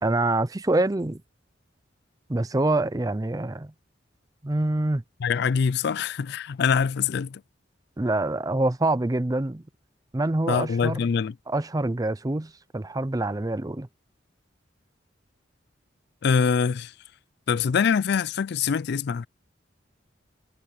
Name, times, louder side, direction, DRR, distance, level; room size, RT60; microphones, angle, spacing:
voice 1, 0.0-1.2 2.3-3.7 4.4-5.0 8.0-9.6 10.1-11.1 11.5-13.9, right 2 dB, 20° right, 0.5 m, -25 dB
voice 2, 5.2-7.4 10.5-11.3 16.2-16.9 17.5-19.3, left 6 dB, 60° left, 0.4 m, -24 dB
head